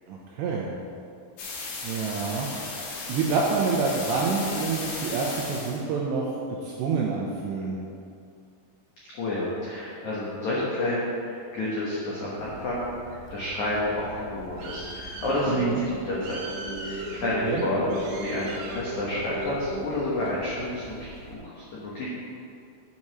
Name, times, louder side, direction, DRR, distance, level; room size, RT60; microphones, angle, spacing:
voice 1, 0.1-0.7 1.8-2.5 3.1-6.3 6.6-7.8 15.5-15.8 17.4-17.7, right 4 dB, 85° right, -2 dB, 2.5 m, -27 dB
sound 1, 1.4-5.8, left 3 dB, 65° left, 3.0 m, -35 dB
voice 2, 9.1-16.4 16.8-22.1, left 1 dB, 90° left, -8 dB, 1.6 m, -30 dB
Bird, 12.4-21.3, right 2 dB, 70° right, 2.5 m, -42 dB
sound 2, 13.6-19.8, right 1 dB, 40° right, 2.5 m, -38 dB
8.6 x 5.4 x 6.1 m, 2.5 s
omnidirectional pair, 5.7 m